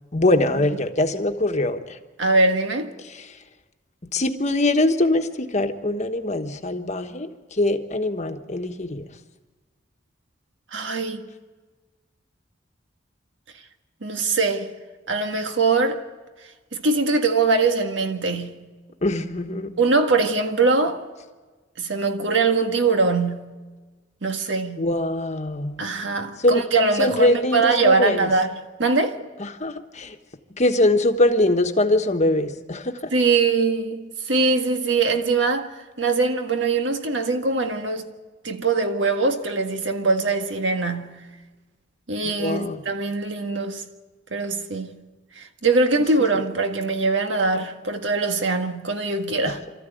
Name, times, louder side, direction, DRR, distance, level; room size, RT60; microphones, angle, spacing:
voice 1, 0.1-2.0 3.1-3.3 4.1-9.1 19.0-19.7 24.8-25.8 26.4-26.6 27.0-28.3 29.4-30.1 30.5-32.9 42.2-42.8 49.4-49.6, left 1 dB, 40° left, 1.2 m, -22 dB
voice 2, 2.2-2.9 10.7-11.3 14.0-14.7 15.1-16.0 16.7-18.7 19.8-21.0 21.8-23.5 24.2-24.9 25.8-28.5 28.8-29.2 33.1-35.7 36.0-38.1 38.4-41.3 42.1-43.8 44.3-45.0 45.4-49.6, right 3 dB, 75° right, 1.7 m, -22 dB
25.5 x 14.0 x 9.2 m
head